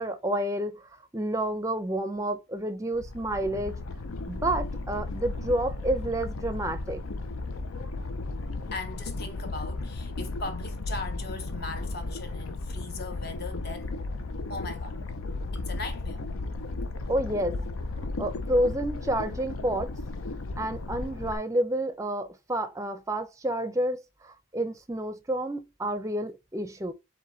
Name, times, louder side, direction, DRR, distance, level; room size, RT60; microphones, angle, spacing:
voice 1, 0.0-3.8 4.3-7.0 17.1-17.6 18.2-19.9 20.6-26.9, right 1 dB, 15° right, 0.5 m, -29 dB
sound 1, 2.9-21.4, left 2 dB, 75° left, 0.6 m, -35 dB
voice 2, 8.7-14.0 14.5-15.0 15.5-16.2, left 3 dB, 45° left, 0.9 m, -39 dB
4.8 x 3.7 x 2.8 m
head